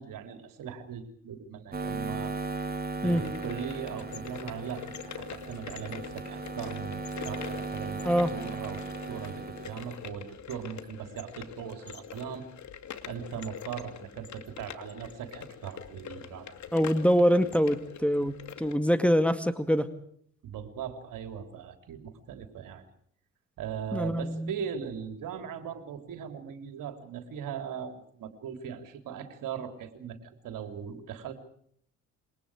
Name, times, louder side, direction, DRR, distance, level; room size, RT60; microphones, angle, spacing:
voice 1, 0.0-2.4 3.0-8.0 8.3-12.5 13.1-16.5 20.4-22.9 23.6-31.3, right 8 dB, 60° right, 6 dB, 3.6 m, -39 dB
sound 1, 1.7-10.0, right 3 dB, 25° right, 3.6 m, -37 dB
sound 2, 2.9-18.8, left 8 dB, 50° left, 2.6 m, -44 dB
voice 2, 16.7-19.9 23.9-24.5, equal, 5° left, 9 dB, 2.0 m, -24 dB
27.5 x 23.5 x 4.9 m, 0.63 s
hypercardioid pair, 55°, 37 cm